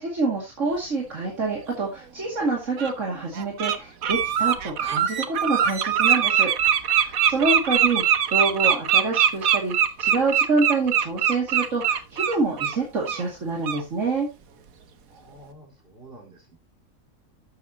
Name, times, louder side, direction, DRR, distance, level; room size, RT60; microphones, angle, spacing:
voice 1, 0.0-8.0 8.3-14.3, right 3 dB, 60° right, -1 dB, 2.7 m, -27 dB
Bird, 1.9-2.0 2.8-2.9 3.4-3.8 4.0-12.8 13.1-13.2 13.6-13.8, right 9 dB, 80° right, 1.4 m, -22 dB
voice 2, 15.1-16.6, right 1 dB, 40° right, 0 dB, 4.4 m, -48 dB
12.5 x 8.4 x 2.9 m, 0.25 s
omnidirectional pair, 1.4 m